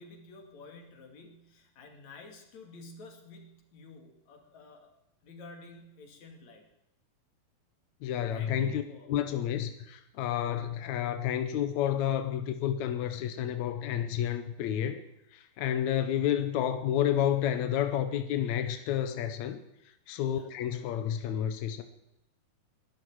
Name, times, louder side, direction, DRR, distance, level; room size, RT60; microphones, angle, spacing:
voice 1, 0.0-4.9 5.2-6.7 8.3-9.1 20.2-20.5, left 3 dB, 50° left, 3 dB, 3.5 m, -51 dB
voice 2, 8.0-8.8 9.1-15.0 15.3-19.6 20.1-21.8, left 10 dB, 75° left, 9 dB, 1.7 m, -30 dB
21.5 x 12.0 x 4.8 m, 0.85 s
omnidirectional pair, 4.5 m